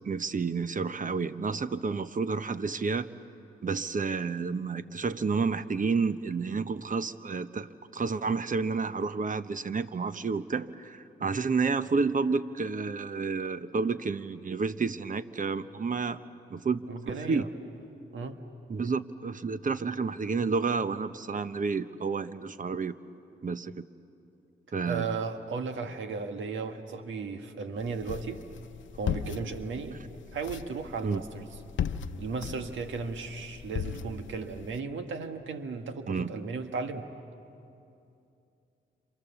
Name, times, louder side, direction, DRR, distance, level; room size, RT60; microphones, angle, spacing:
voice 1, 0.0-3.1 3.6-16.2 16.5-17.4 18.7-22.9 23.4-23.9 24.7-25.1 31.0-31.2 36.1-36.3, right 4 dB, 40° right, 12 dB, 1.0 m, -30 dB
voice 2, 16.9-17.5 18.1-18.4 24.8-28.4 28.9-30.0 30.3-31.5 32.2-37.1, right 4 dB, 75° right, 6 dB, 1.7 m, -35 dB
sound 1, 27.8-34.8, left 8 dB, 75° left, 0.8 m, -38 dB
29.5 x 27.5 x 7.1 m, 2.7 s
cardioid pair, 55°, 20 cm